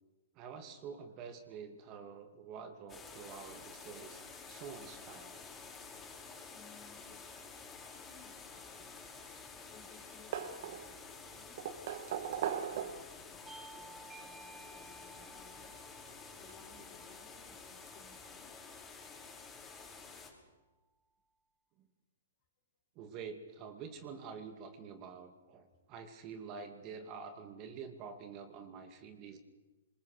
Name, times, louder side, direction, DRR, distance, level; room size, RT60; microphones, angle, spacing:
voice 1, 0.3-4.2 4.5-5.4 21.8-21.9 23.0-29.4, right 6 dB, 35° right, 7 dB, 2.5 m, -47 dB
sound 1, 2.9-20.3, left 4 dB, 15° left, 5.8 m, -51 dB
voice 2, 6.4-7.7 7.9-9.0 9.7-12.1 12.7-15.7 16.3-18.5, left 5 dB, 35° left, 3 dB, 5.4 m, -62 dB
sound 2, 9.0-9.7 9.9-11.1 11.6-13.2 14.4-14.5 16.1-16.2 16.5-16.6, right 9 dB, 55° right, 1.8 m, -39 dB
Bell / Doorbell, 13.5-18.5, right 3 dB, 10° right, 2.8 m, -56 dB
26.0 x 21.5 x 6.8 m, 1.2 s
hypercardioid pair, 135°, 0 cm